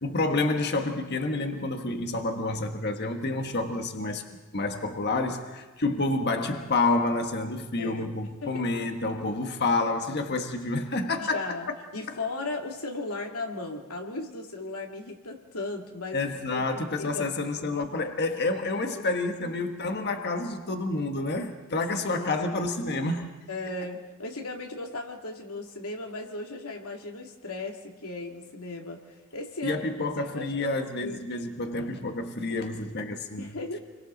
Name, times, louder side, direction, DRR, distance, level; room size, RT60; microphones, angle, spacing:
voice 1, 0.0-4.2 4.5-11.6 12.1-12.2 16.1-23.3 29.6-33.6, left 2 dB, 50° left, 1.3 m, -29 dB
voice 2, 7.8-8.1 8.4-8.6 11.2-11.7 11.9-17.3 18.7-19.1 19.3-19.7 22.0-22.3 23.5-31.2 33.4-33.8, left 2 dB, 80° left, 2.6 m, -37 dB
29.0 x 23.0 x 4.0 m
head